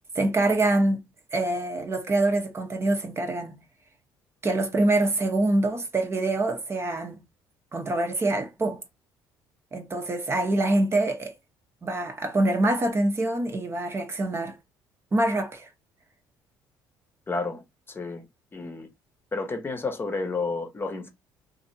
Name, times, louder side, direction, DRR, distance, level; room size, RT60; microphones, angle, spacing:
voice 1, 0.1-1.0 1.3-3.5 4.4-7.2 7.7-8.8 9.7-11.3 11.8-14.6 15.1-15.7, right 2 dB, 30° right, 0.8 m, -25 dB
voice 2, 17.3-17.6 17.9-18.3 18.5-18.9 19.3-21.1, left 3 dB, 25° left, 0.8 m, -31 dB
2.8 x 2.6 x 2.6 m
supercardioid pair, 80°, 8 cm